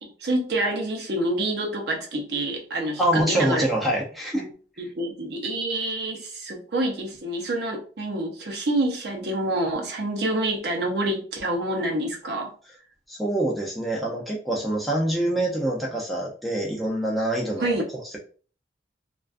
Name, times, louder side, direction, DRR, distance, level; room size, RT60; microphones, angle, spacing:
voice 1, 0.0-3.6 4.3-4.5 4.8-12.5 17.6-17.8, right 1 dB, 65° right, 1 dB, 0.6 m, -27 dB
voice 2, 3.0-4.5 13.1-17.8, right 1 dB, ahead, -3 dB, 0.4 m, -25 dB
2.4 x 2.3 x 2.4 m, 0.40 s
head